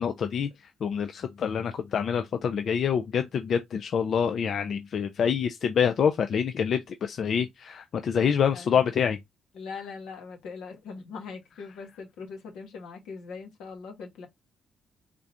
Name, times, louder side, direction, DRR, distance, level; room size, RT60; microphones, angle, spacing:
voice 1, 0.0-9.2, left 7 dB, 60° left, 0.4 m, -26 dB
voice 2, 8.5-8.9 9.5-14.3, left 5 dB, 85° left, 1.4 m, -41 dB
3.7 x 3.5 x 2.7 m
cardioid pair, 90°, 0 cm